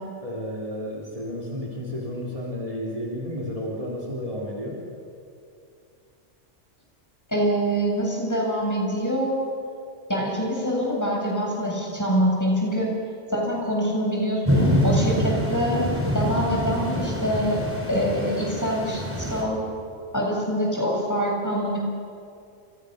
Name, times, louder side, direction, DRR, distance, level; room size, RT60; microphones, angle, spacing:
voice 1, 0.2-4.8, equal, 30° right, -4 dB, 3.6 m, -32 dB
voice 2, 7.3-9.5 10.1-12.9 13.3-15.8 16.1-17.6 17.9-19.6 20.1-21.8, equal, 15° left, -2 dB, 7.5 m, -25 dB
sound 1, 14.4-19.4, equal, 10° right, 4.2 m, -25 dB
29.5 x 28.5 x 6.7 m, 2.5 s
omnidirectional pair, 1.2 m